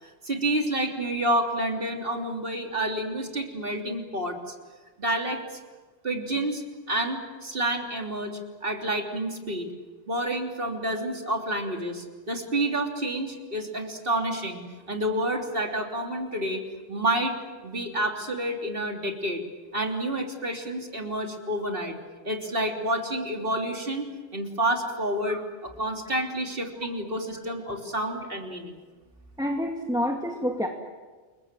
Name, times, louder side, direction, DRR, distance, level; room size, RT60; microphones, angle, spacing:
voice 1, 0.2-4.5 5.0-5.6 6.0-6.6 6.9-9.7 10.1-16.6 16.9-17.4 17.6-19.4 19.7-21.9 22.2-24.1 24.3-28.8, right 1 dB, 60° right, 2 dB, 3.5 m, -29 dB
voice 2, 29.4-30.7, equal, 5° right, 1 dB, 2.1 m, -28 dB
28.5 x 22.5 x 7.6 m, 1.3 s
omnidirectional pair, 1.1 m